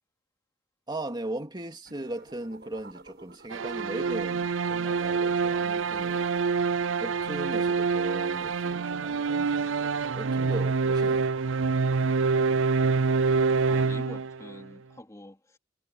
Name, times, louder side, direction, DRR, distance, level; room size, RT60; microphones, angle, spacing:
voice 1, 0.9-6.3 7.0-11.3, right 1 dB, 25° right, 2.9 m, -38 dB
sound 1, 1.8-4.2, right 3 dB, 55° right, 8.0 m, -52 dB
sound 2, 3.5-14.6, right 4 dB, 75° right, 0.5 m, -26 dB
voice 2, 13.6-15.6, left 1 dB, 15° left, 2.8 m, -45 dB
head